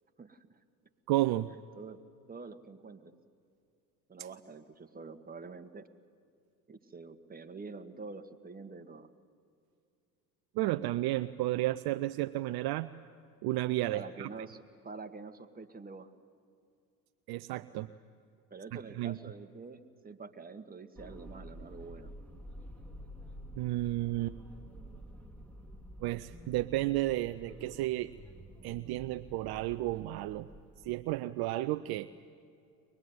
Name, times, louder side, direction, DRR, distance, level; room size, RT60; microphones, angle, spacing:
voice 1, 0.2-0.6 1.7-2.0 2.3-3.2 4.1-5.9 6.7-9.1 13.9-16.1 18.5-22.1, right 4 dB, 20° right, 7 dB, 1.6 m, -47 dB
voice 2, 1.1-1.5 10.5-12.9 13.4-14.3 17.3-17.9 19.0-19.2 23.6-24.4 26.0-28.1 28.6-30.5 30.8-32.1, right 17 dB, 55° right, 10 dB, 0.7 m, -32 dB
sound 1, 21.0-31.2, equal, 5° left, 3.2 m, -50 dB
23.5 x 20.5 x 9.5 m, 2.4 s
hypercardioid pair, 70°, 46 cm